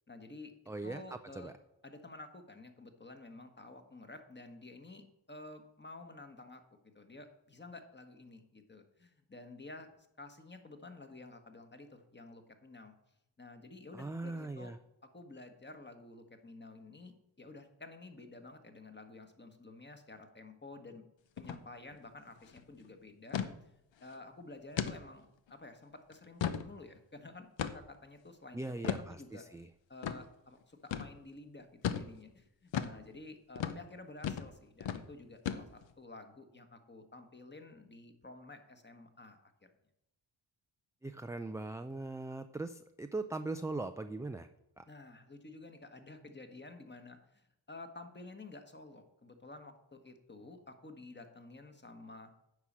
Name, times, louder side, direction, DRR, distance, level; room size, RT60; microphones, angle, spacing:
voice 1, 0.1-0.5 0.8-1.5 1.8-9.9 10.2-13.0 13.4-14.7 15.0-21.0 21.4-28.6 29.1-29.5 29.9-39.7 44.9-52.3, left 2 dB, 20° left, 7 dB, 1.4 m, -51 dB
voice 2, 0.7-1.0 1.3-1.5 13.9-14.8 28.5-29.7 41.0-44.5 44.8-44.9, right 2 dB, 5° right, 8 dB, 0.4 m, -40 dB
sound 1, 21.4-21.6 21.9-22.0 22.4-22.6 23.3-23.5 24.0-24.1 24.8-25.0 25.5-25.6 26.1-26.7 27.6-28.0 28.8-29.1 30.0-30.2 30.9-31.1 31.8-32.1 32.7-33.0 33.6-33.8 34.2-34.5 34.8-35.0 35.5-35.9, left 8 dB, 70° left, 0.9 m, -35 dB
9.6 x 4.9 x 7.3 m, 0.84 s
cardioid pair, 75°, 47 cm